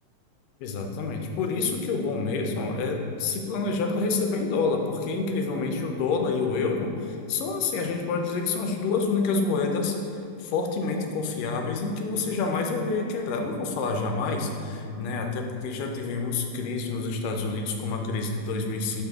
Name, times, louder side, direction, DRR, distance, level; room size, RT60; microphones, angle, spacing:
voice 1, 0.6-10.0 10.4-19.0, left 4 dB, 90° left, 3 dB, 2.3 m, -28 dB
7.5 x 5.8 x 3.5 m, 2.7 s
omnidirectional pair, 3.6 m